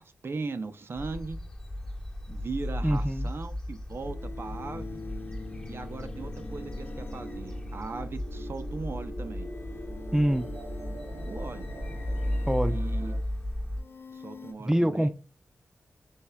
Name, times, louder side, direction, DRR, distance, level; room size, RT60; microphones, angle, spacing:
voice 1, 0.0-1.4 2.3-5.0 5.7-9.5 11.3-11.7 12.7-13.2 14.1-15.1, right 3 dB, 55° right, 0.6 m, -38 dB
sound 1, 1.0-13.8, left 1 dB, 15° left, 1.2 m, -35 dB
sound 2, 1.8-1.9 4.0-8.4 9.3-14.5, left 3 dB, 50° left, 0.6 m, -45 dB
voice 2, 2.8-3.3 10.1-10.5 12.5-12.8 14.6-15.1, equal, 10° right, 0.5 m, -25 dB
sound 3, 3.9-13.2, right 1 dB, 80° right, 1.1 m, -45 dB
6.3 x 3.6 x 2.2 m
cardioid pair, 45°, 5 cm